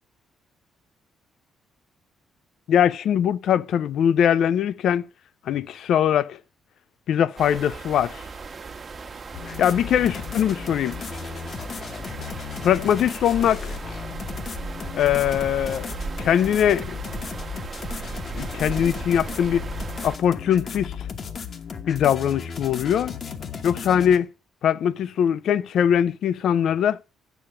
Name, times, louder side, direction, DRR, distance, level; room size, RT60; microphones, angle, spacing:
voice 1, 2.7-5.0 5.5-6.4 7.1-8.2 9.6-11.0 12.6-13.8 14.9-15.9 16.2-16.8 18.4-19.6 20.0-20.9 21.9-23.2 23.6-24.3 24.6-27.0, left 9 dB, 70° left, 0.5 m, -21 dB
sound 1, 7.4-20.2, right 4 dB, 40° right, 1.2 m, -37 dB
sound 2, 9.3-24.2, left 6 dB, 50° left, 1.1 m, -35 dB
7.5 x 7.0 x 6.9 m
cardioid pair, 90°, 0 cm